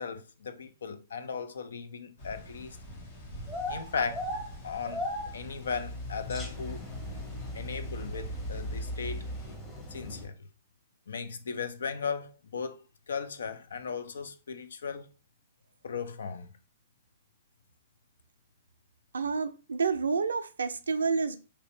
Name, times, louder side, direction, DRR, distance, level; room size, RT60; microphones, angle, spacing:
voice 1, 0.0-2.8 3.7-4.3 4.6-5.1 5.3-6.8 7.5-9.3 9.9-10.4 11.1-15.1 15.8-16.5, left 5 dB, 75° left, 0.4 m, -37 dB
sound 1, 2.2-9.6, left 1 dB, 60° left, 1.2 m, -46 dB
sound 2, 3.4-10.3, left 1 dB, 15° left, 1.0 m, -37 dB
voice 2, 19.1-21.4, right 5 dB, 80° right, 0.3 m, -29 dB
3.1 x 2.7 x 3.1 m
hypercardioid pair, 120°, 0 cm